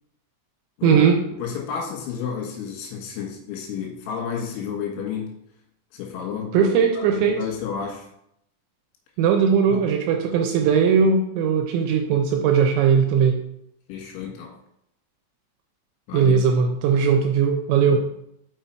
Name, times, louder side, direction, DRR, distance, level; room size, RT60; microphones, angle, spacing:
voice 1, 0.8-1.2 6.5-7.4 9.2-13.4 16.1-18.0, right 6 dB, 80° right, 4 dB, 2.7 m, -19 dB
voice 2, 1.4-5.3 5.9-6.7 7.0-8.1 9.7-9.8 13.9-14.5 16.1-16.4 17.8-18.0, left 7 dB, 75° left, 0 dB, 3.9 m, -31 dB
6.7 x 5.6 x 4.4 m, 0.76 s
omnidirectional pair, 5.7 m